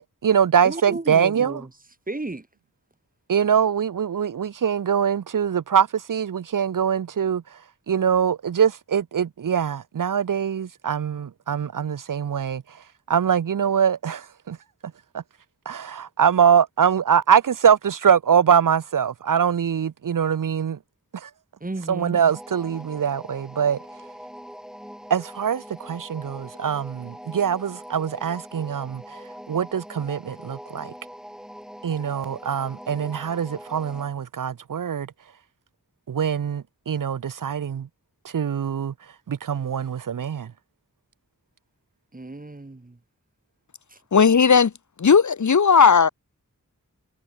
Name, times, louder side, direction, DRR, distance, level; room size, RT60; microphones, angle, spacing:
voice 1, 0.0-1.6 3.3-7.6 7.9-12.6 13.1-14.6 15.1-15.2 15.7-20.8 21.1-21.3 21.9-23.8 25.1-30.9 31.8-35.1 36.1-37.9 38.2-38.9 39.3-40.5, right 8 dB, 70° right, 0.5 m, -23 dB
voice 2, 0.6-1.7 2.1-2.5 21.6-22.2 42.1-43.0 43.9-44.0, right 2 dB, 25° right, 1.3 m, -33 dB
sound 1, 22.3-34.1, equal, ahead, 6.6 m, -42 dB
voice 3, 44.1-44.7 45.0-46.1, left 6 dB, 60° left, 0.7 m, -15 dB
wide cardioid pair, 60°, 33 cm